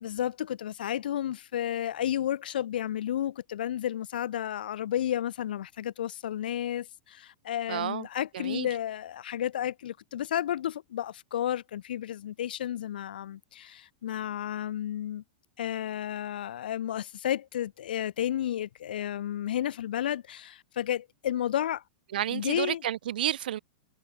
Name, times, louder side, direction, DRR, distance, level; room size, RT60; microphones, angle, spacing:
voice 1, 0.0-15.2 15.6-21.8 22.3-22.9, left 11 dB, 80° left, 0.9 m, -32 dB
voice 2, 7.7-8.0 8.5-8.7 22.1-23.6, right 11 dB, 85° right, 0.4 m, -30 dB
supercardioid pair, 145°, 5 cm